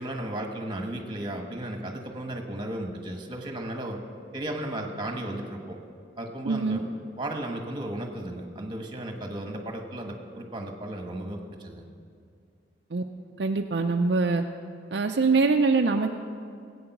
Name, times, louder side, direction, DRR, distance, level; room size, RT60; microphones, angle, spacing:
voice 1, 0.0-4.0 4.3-5.8 6.2-6.8 7.2-11.9, right 1 dB, 25° right, 3 dB, 1.3 m, -35 dB
voice 2, 6.4-6.8 12.9-13.0 13.4-14.4 14.9-16.1, right 4 dB, 60° right, 4 dB, 0.5 m, -23 dB
18.0 x 8.6 x 6.0 m, 2.3 s
head